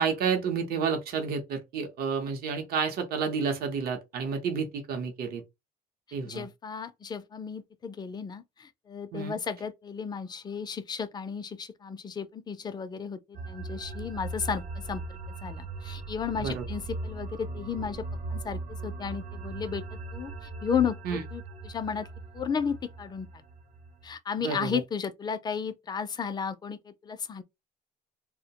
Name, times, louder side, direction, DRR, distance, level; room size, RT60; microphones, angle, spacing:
voice 1, 0.0-5.4 6.1-6.4 9.1-9.4 16.4-16.6 21.1-21.2 24.4-24.8, right 6 dB, 65° right, 0.7 m, -30 dB
voice 2, 6.2-22.1 22.3-23.4 24.0-27.4, left 6 dB, 25° left, 0.4 m, -34 dB
sound 1, 13.3-24.1, right 3 dB, 40° right, 0.4 m, -39 dB
2.2 x 2.1 x 2.8 m
cardioid pair, 110°, 17 cm